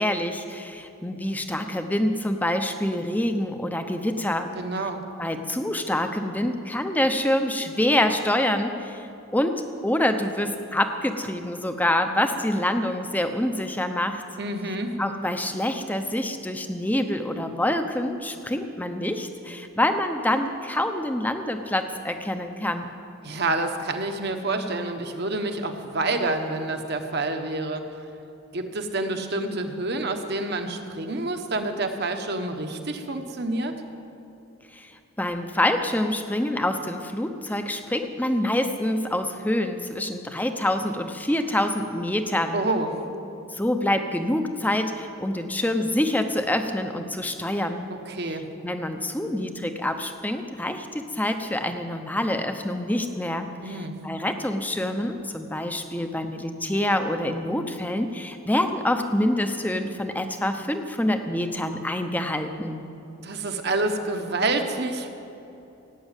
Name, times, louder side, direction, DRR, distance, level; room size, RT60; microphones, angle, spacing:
voice 1, 0.0-4.5 5.2-9.1 9.3-14.2 15.0-22.9 34.7-42.6 43.5-47.9 48.6-62.9, left 1 dB, 10° left, 7 dB, 0.8 m, -26 dB
voice 2, 4.5-5.0 14.4-15.0 23.2-27.9 28.5-33.7 42.5-42.9 47.9-48.5 53.6-54.0 63.2-65.1, right 2 dB, 50° right, 5 dB, 1.2 m, -28 dB
17.0 x 8.6 x 9.1 m, 3.0 s
head